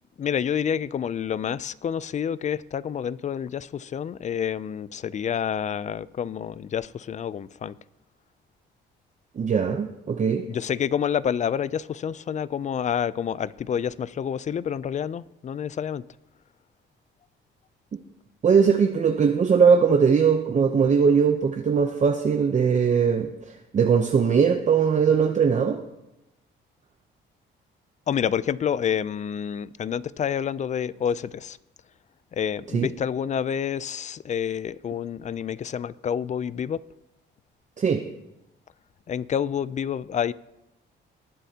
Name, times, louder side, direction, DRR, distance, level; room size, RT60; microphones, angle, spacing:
voice 1, 0.2-7.7 10.5-16.0 28.1-31.6 32.3-36.8 39.1-40.3, left 8 dB, 35° left, 0.4 m, -28 dB
voice 2, 9.4-10.4 18.4-25.8 32.7-32.9 37.8-38.0, right 6 dB, 35° right, 0.7 m, -20 dB
19.0 x 9.1 x 2.8 m
cardioid pair, 90°, 20 cm